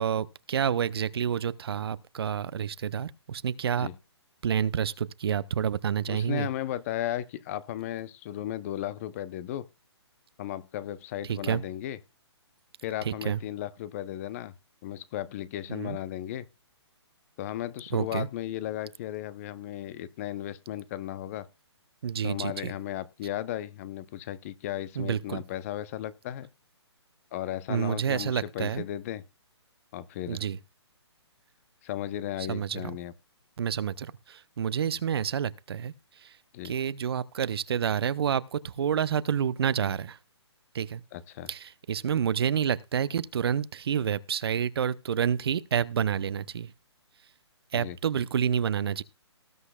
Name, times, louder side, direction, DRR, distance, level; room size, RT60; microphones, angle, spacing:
voice 1, 0.0-3.9 4.4-6.5 11.3-11.6 13.0-13.4 15.7-16.0 17.9-18.3 22.0-22.7 25.0-25.4 27.7-28.8 30.3-30.6 32.5-32.9 33.6-35.9 36.2-36.3 36.6-40.2 40.7-41.0 41.5-46.7 47.7-49.0, right 8 dB, 60° right, 0.7 m, -29 dB
voice 2, 6.1-9.7 10.4-12.0 12.8-14.5 14.8-16.5 17.4-21.5 22.2-26.5 27.3-29.2 29.9-30.4 31.8-33.1 36.5-36.7 41.1-41.5 47.7-48.0, left 12 dB, 30° left, 0.7 m, -35 dB
19.0 x 7.9 x 2.3 m
hypercardioid pair, 145°, 15 cm